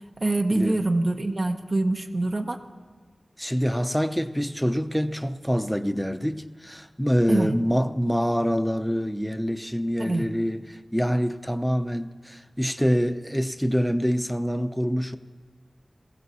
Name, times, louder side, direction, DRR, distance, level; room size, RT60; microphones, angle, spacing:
voice 1, 0.2-2.6 7.3-7.5 10.0-10.3, right 2 dB, 55° right, 1.0 m, -24 dB
voice 2, 3.4-15.2, equal, ahead, 0.7 m, -25 dB
21.5 x 15.5 x 4.2 m
wide cardioid pair, 55°, 0 cm